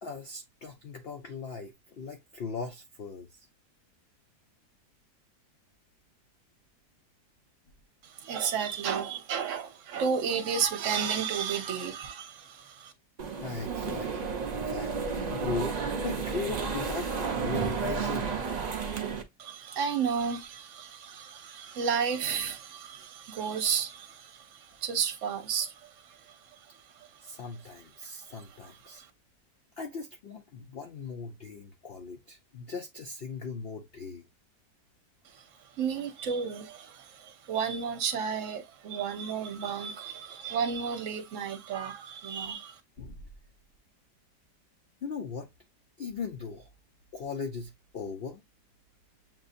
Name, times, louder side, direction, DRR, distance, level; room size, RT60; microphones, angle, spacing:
voice 1, 0.0-3.5 13.4-18.3 27.2-29.0 29.8-34.2 43.0-43.2 45.0-45.5 46.0-46.7 47.1-48.4, left 5 dB, 75° left, 0.5 m, -39 dB
voice 2, 8.0-12.9 19.4-26.4 27.0-27.1 28.6-28.9 35.8-42.8, right 7 dB, 55° right, 1.1 m, -32 dB
sound 1, 13.2-19.2, right 5 dB, 80° right, 0.3 m, -32 dB
7.5 x 2.6 x 2.4 m
omnidirectional pair, 1.8 m